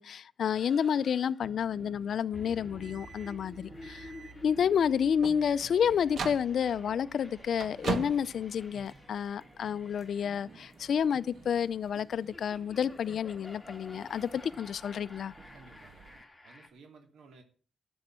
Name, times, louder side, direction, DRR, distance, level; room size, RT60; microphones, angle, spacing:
voice 1, 0.0-4.1 4.4-15.3, left 8 dB, 65° left, 0.5 m, -30 dB
sound 1, 0.5-16.7, left 2 dB, 10° left, 2.4 m, -51 dB
sound 2, 1.4-16.2, right 3 dB, 45° right, 2.4 m, -57 dB
sound 3, 2.7-9.3, right 5 dB, 60° right, 1.4 m, -41 dB
voice 2, 15.5-16.1 16.4-17.4, right 4 dB, 85° right, 2.6 m, -55 dB
12.0 x 7.1 x 7.6 m
cardioid pair, 120°, 0 cm